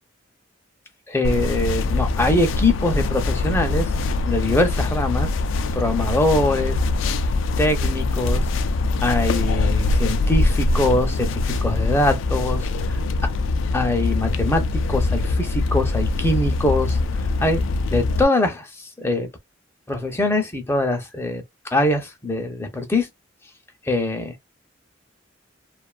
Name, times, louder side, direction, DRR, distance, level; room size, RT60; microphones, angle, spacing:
voice 1, 1.1-3.9 4.3-5.3 5.7-6.8 7.6-8.5 9.0-13.0 13.7-19.3 19.9-21.4 21.7-23.1 23.9-24.4, left 1 dB, 15° left, 0.5 m, -23 dB
sound 1, 1.2-18.2, left 3 dB, 80° left, 0.3 m, -23 dB
2.5 x 2.3 x 2.3 m
head